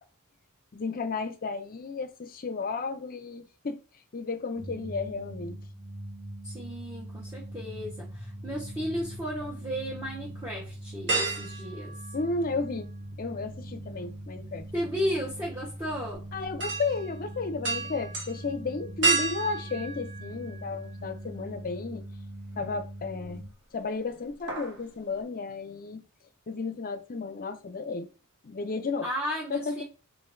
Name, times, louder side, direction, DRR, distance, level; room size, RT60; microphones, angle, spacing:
voice 1, 0.7-3.8 4.1-5.6 12.1-12.9 13.2-14.7 16.3-22.0 22.6-23.4 23.7-26.0 26.5-28.1 28.4-29.1 29.5-29.8, left 4 dB, 40° left, 0.5 m, -33 dB
sound 1, 4.5-23.5, right 1 dB, 80° right, 1.7 m, -42 dB
voice 2, 6.4-11.9 14.7-16.2 29.0-29.8, equal, 15° right, 1.0 m, -34 dB
sound 2, 8.4-9.4 9.9-10.0 11.1-12.8 13.1-21.0 21.4-21.5 23.0-23.5 23.8-24.0 24.3-24.8 25.2-25.3, right 3 dB, 55° right, 1.2 m, -33 dB
4.4 x 3.8 x 2.6 m
head